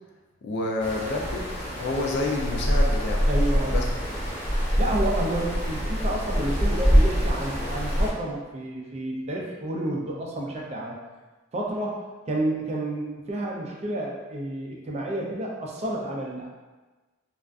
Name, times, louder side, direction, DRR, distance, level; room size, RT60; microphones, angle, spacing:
voice 1, 0.4-1.5 1.7-3.3 3.7-3.9, left 2 dB, 55° left, 0 dB, 0.3 m, -28 dB
sound 1, 0.8-8.1, equal, 15° right, 0.8 m, -24 dB
voice 2, 3.3-3.8 4.8-11.0 11.5-16.5, right 1 dB, 30° right, -2 dB, 0.3 m, -30 dB
2.4 x 2.3 x 2.2 m, 1.3 s
head